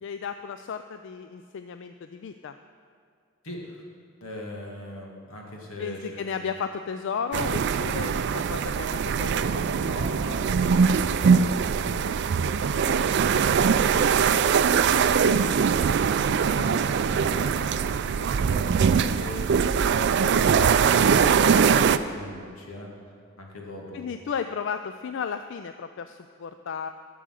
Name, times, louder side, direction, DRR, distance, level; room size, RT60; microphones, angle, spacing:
voice 1, 0.0-2.5 5.8-9.7 23.9-26.9, left 6 dB, 60° left, 9 dB, 0.4 m, -34 dB
voice 2, 3.4-3.8 4.2-6.3 9.8-14.4 14.8-22.9 23.4-24.1, left 1 dB, 85° left, -1 dB, 2.1 m, -39 dB
sound 1, 7.3-22.0, right 6 dB, 55° right, 0.3 m, -22 dB
11.0 x 6.9 x 6.4 m, 2.3 s
head